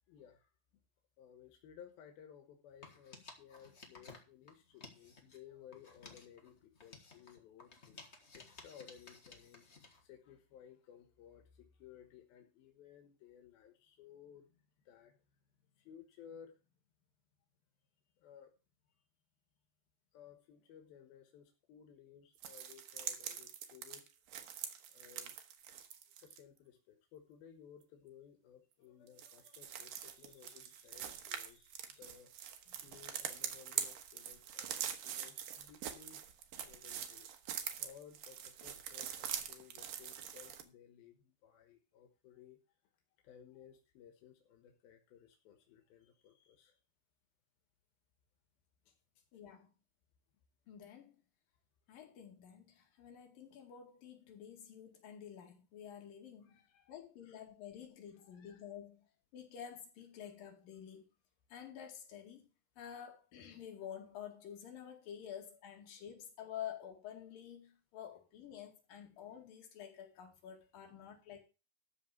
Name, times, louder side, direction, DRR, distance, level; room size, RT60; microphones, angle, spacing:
voice 1, 0.1-0.5 1.2-15.2 15.8-16.6 18.2-18.5 20.1-24.1 24.9-25.4 26.2-32.3 32.8-36.2 36.5-42.6 43.2-46.8 48.9-49.0 56.4-57.0 57.2-57.3 58.2-58.6 71.0-71.1, left 8 dB, 90° left, 3.2 m, -59 dB
sound 1, 2.7-5.4 5.7-10.0, left 3 dB, 40° left, 1.0 m, -56 dB
sound 2, 22.4-26.4 29.1-40.6, right 9 dB, 75° right, 2.9 m, -44 dB
voice 2, 49.3-49.7 50.7-51.2 51.9-56.6 56.9-59.1 59.3-61.1 61.5-62.5 62.8-71.4, left 9 dB, 70° left, 3.9 m, -50 dB
13.0 x 4.7 x 7.1 m
omnidirectional pair, 4.2 m